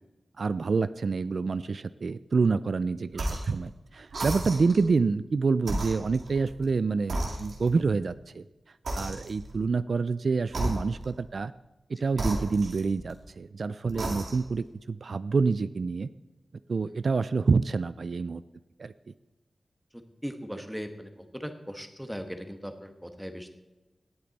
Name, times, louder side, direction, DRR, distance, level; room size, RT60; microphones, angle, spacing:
voice 1, 0.4-8.4 8.9-11.5 11.9-16.1 16.7-18.4 18.8-18.9, right 4 dB, 65° right, 15 dB, 0.3 m, -27 dB
sound 1, 3.1-3.6 4.1-4.9 5.6-6.7 7.1-7.9 8.8-9.6 10.5-11.2 12.1-13.2 13.8-14.6, right 1 dB, 85° right, 2.5 m, -34 dB
voice 2, 20.2-23.5, equal, 5° right, 7 dB, 1.3 m, -38 dB
18.0 x 8.6 x 4.1 m, 1.0 s
wide cardioid pair, 95°, 0 cm